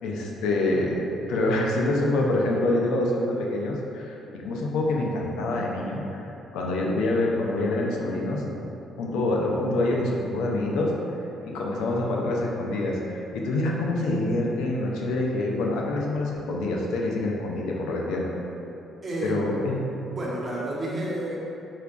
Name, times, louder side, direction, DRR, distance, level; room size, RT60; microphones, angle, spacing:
voice 1, 0.0-8.4 9.0-10.9 11.4-18.3 19.2-19.8, left 2 dB, 85° left, -1 dB, 0.4 m, -26 dB
voice 2, 19.0-21.4, right 1 dB, 35° right, -5 dB, 0.8 m, -31 dB
4.4 x 2.3 x 2.4 m, 2.9 s
supercardioid pair, 70°, 0 cm